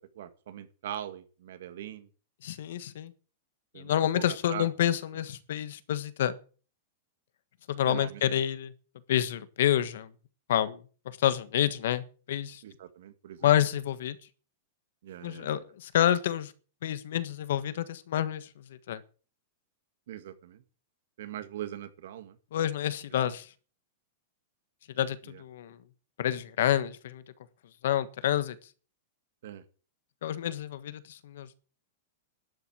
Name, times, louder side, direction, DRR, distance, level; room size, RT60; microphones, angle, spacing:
voice 1, 0.1-2.1 3.7-4.7 7.9-8.5 12.6-13.5 15.0-15.6 20.1-20.6 21.2-22.4 23.2-23.3 25.3-25.4 29.4-29.6, right 11 dB, 65° right, 1.9 m, -41 dB
voice 2, 2.4-3.1 3.7-6.3 7.7-8.7 9.1-10.1 10.5-10.8 11.0-12.6 13.4-14.2 15.2-16.5 16.8-18.5 18.9-19.0 22.5-23.4 25.0-25.8 26.2-27.2 27.8-28.5 30.2-31.5, left 11 dB, 65° left, 1.4 m, -28 dB
12.0 x 7.9 x 8.8 m
supercardioid pair, 175°, 0 cm